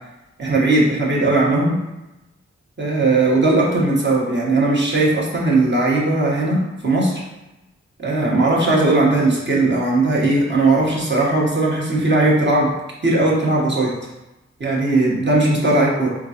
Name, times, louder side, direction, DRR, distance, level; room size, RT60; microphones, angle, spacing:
voice 1, 0.4-1.8 2.8-7.2 8.0-12.7 13.0-13.9 14.6-16.2, right 2 dB, 40° right, -4 dB, 1.1 m, -18 dB
3.8 x 2.4 x 2.8 m, 1.0 s
cardioid pair, 40°, 29 cm